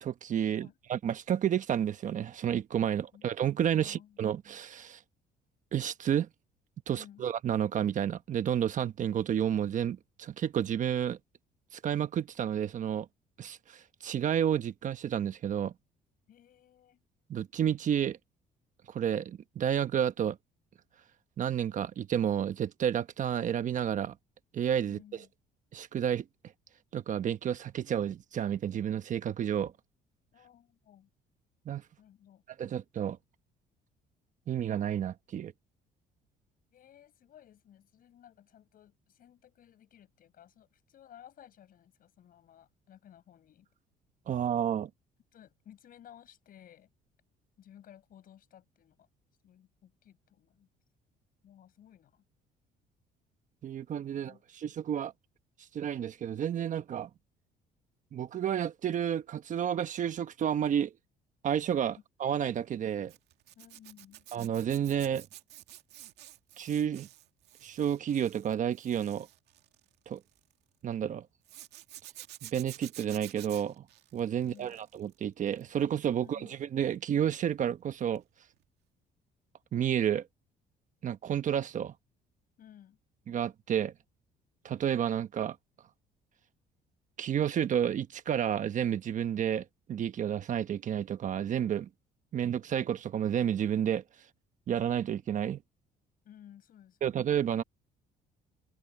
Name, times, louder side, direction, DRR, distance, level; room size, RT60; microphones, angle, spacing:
voice 1, 0.0-5.0 5.7-6.3 6.9-11.2 11.7-13.1 13.4-15.7 17.3-18.2 18.9-20.4 21.4-24.1 24.5-25.0 25.7-26.3 26.9-29.7 31.7-31.8 32.6-33.2 34.5-35.5 44.3-44.9 53.6-55.1 55.7-57.1 58.1-60.9 61.4-63.1 64.3-65.3 66.6-67.1 67.6-69.3 70.1-70.2 70.8-71.3 72.4-73.8 74.1-78.2 79.7-80.3 81.0-81.9 83.3-83.9 84.6-85.6 87.2-91.9 92.3-94.0 94.7-95.6 97.0-97.6, right 9 dB, 50° right, 1.1 m, -31 dB
voice 2, 3.8-4.2 6.9-7.2 16.3-17.0 24.8-25.3 30.3-31.1 32.0-32.4 36.7-43.7 45.3-46.9 47.6-49.1 49.4-50.7 51.4-52.2 54.1-54.4 63.6-64.3 74.4-74.8 76.2-76.5 82.6-83.0 96.3-97.5, left 10 dB, 60° left, 6.8 m, -56 dB
Zipper (clothing), 63.1-70.5 71.4-75.1 75.5-75.8 78.1-78.3 78.6-78.7, right 14 dB, 80° right, 2.1 m, -51 dB
open air
cardioid pair, 110°, 17 cm